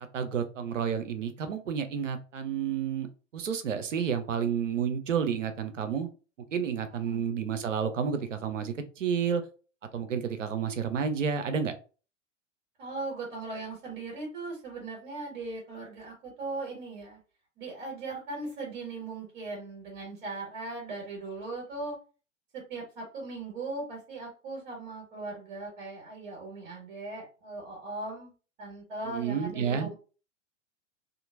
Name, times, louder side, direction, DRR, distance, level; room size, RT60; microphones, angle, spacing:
voice 1, 0.1-6.1 6.5-9.4 9.9-11.7 29.1-29.9, right 7 dB, 75° right, 9 dB, 0.6 m, -30 dB
voice 2, 12.8-17.2 17.6-21.9 22.5-28.3 28.6-29.9, right 3 dB, 40° right, -3 dB, 1.5 m, -39 dB
2.9 x 2.5 x 2.5 m, 0.35 s
figure-of-eight pair, 95°, 37 cm